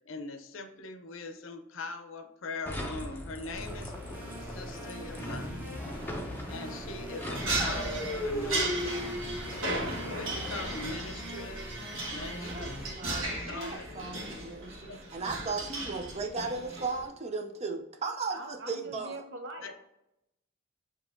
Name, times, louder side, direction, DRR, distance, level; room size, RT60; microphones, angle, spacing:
voice 1, 0.1-3.9 4.4-5.7 6.5-9.0 9.8-11.8 12.1-12.8 13.3-13.9 14.9-15.0 19.6-19.7, left 3 dB, 70° left, 7 dB, 0.6 m, -42 dB
sound 1, 2.7-11.4, left 1 dB, 10° left, 0.6 m, -38 dB
sound 2, 3.5-12.9, equal, 10° right, 1.1 m, -43 dB
sound 3, 7.3-17.1, right 2 dB, 80° right, 1.4 m, -36 dB
voice 2, 12.3-19.2, right 4 dB, 30° right, 5 dB, 0.5 m, -36 dB
voice 3, 18.3-19.7, right 2 dB, 60° right, 4 dB, 0.8 m, -42 dB
6.7 x 2.9 x 2.6 m, 0.85 s
head